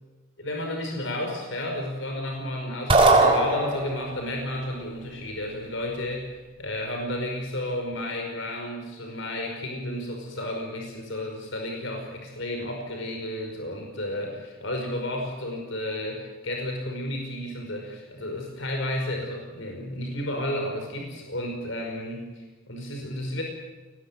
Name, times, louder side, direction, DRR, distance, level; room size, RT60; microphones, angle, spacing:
voice 1, 0.4-6.3 6.6-23.4, left 1 dB, 60° left, 2 dB, 5.5 m, -32 dB
sound 1, 2.9-4.2, right 2 dB, 25° right, 3.8 m, -19 dB
22.0 x 19.5 x 8.3 m, 1.3 s
head